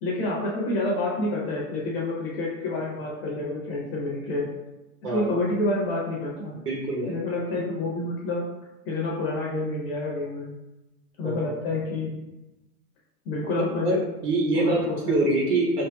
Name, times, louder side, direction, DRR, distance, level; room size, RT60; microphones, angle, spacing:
voice 1, 0.0-4.4 5.1-6.5 7.1-8.4 8.9-10.5 11.2-12.1 13.2-14.0 14.5-15.4, left 2 dB, 40° left, -4 dB, 0.8 m, -28 dB
voice 2, 6.7-7.2 11.2-11.4 13.6-14.0 14.2-15.8, right 2 dB, 75° right, -2 dB, 1.1 m, -25 dB
4.9 x 2.8 x 2.2 m, 1.0 s
hypercardioid pair, 160°, 47 cm